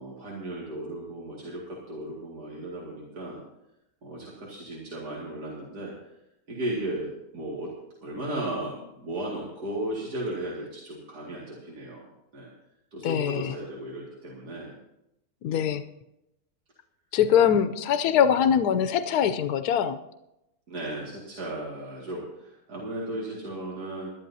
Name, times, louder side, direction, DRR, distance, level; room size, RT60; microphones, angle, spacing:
voice 1, 0.0-3.4 4.0-6.1 6.5-7.7 8.0-12.1 12.3-12.5 12.9-14.8 15.5-15.8 20.7-24.1, right 1 dB, 90° right, -4 dB, 2.7 m, -35 dB
voice 2, 13.0-13.5 15.4-15.8 17.1-20.0, left 8 dB, 85° left, 10 dB, 1.2 m, -23 dB
21.0 x 12.0 x 2.8 m, 0.87 s
omnidirectional pair, 1.6 m